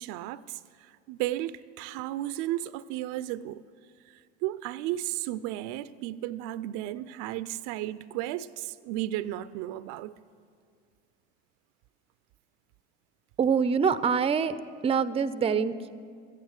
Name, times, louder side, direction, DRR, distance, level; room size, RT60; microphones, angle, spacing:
voice 1, 0.0-3.6 4.1-10.1, right 14 dB, 65° right, 16 dB, 0.5 m, -34 dB
voice 2, 13.4-14.5 14.8-15.9, right 6 dB, 20° right, 14 dB, 0.5 m, -25 dB
14.0 x 9.4 x 6.4 m, 2.1 s
hypercardioid pair, 80°, 34 cm